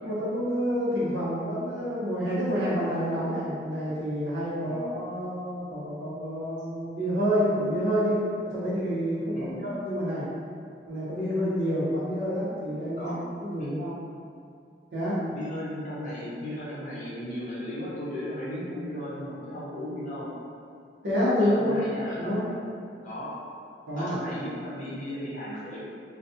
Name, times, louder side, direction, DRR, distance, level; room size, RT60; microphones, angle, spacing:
voice 1, 0.0-8.2 8.4-10.3 10.9-13.1 13.4-13.9 14.9-15.2 21.0-21.8 22.2-22.4 23.9-24.2, equal, 80° right, -9 dB, 0.8 m, -28 dB
voice 2, 9.3-9.6 13.0-13.2 13.6-13.7 15.3-20.3 21.4-22.4 23.0-23.3 23.9-25.8, equal, 45° left, -7 dB, 0.6 m, -36 dB
2.3 x 2.3 x 2.7 m, 2.3 s
head